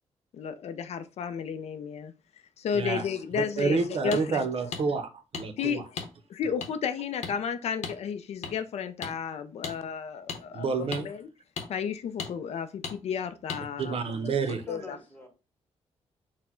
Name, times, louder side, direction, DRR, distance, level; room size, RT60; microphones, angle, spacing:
voice 1, 0.3-2.1 2.6-4.5 5.6-6.0 6.3-11.3 11.7-13.9 14.2-15.0, left 7 dB, 70° left, 0.4 m, -33 dB
voice 2, 3.3-5.8 10.5-11.1 13.8-14.6, right 4 dB, 55° right, 0.6 m, -29 dB
sound 1, 4.1-4.2 4.7-4.8 5.3-5.5 6.0-6.1 6.6-6.7 7.2-7.4 7.8-8.0 8.4-8.5 9.0-9.1 9.6-9.8 10.3-10.4 10.9-11.0 11.6-11.7 12.2-12.3 12.8-13.0 13.5-13.6, left 6 dB, 85° left, 0.8 m, -35 dB
voice 3, 14.5-15.3, left 2 dB, 15° left, 1.4 m, -43 dB
4.3 x 2.1 x 4.3 m
cardioid pair, 115°, 11 cm